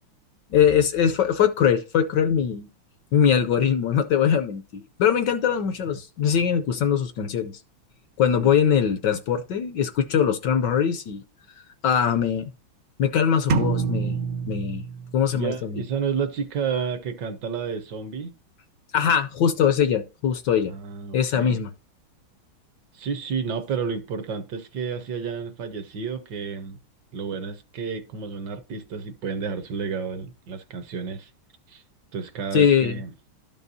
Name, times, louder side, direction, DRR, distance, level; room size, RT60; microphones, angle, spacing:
voice 1, 0.5-2.7 3.1-7.5 8.2-11.2 11.8-12.5 13.0-14.2 14.5-14.8 15.1-15.8 18.9-20.7 21.1-21.7 32.5-33.0, left 8 dB, 70° left, 1.1 m, -22 dB
sound 1, 13.5-15.4, right 5 dB, 85° right, 0.7 m, -26 dB
voice 2, 15.3-18.3 20.6-21.6 22.9-26.8 27.1-31.3 31.7-31.8 32.1-33.1, right 6 dB, 70° right, 1.2 m, -31 dB
12.5 x 5.4 x 2.6 m
omnidirectional pair, 2.2 m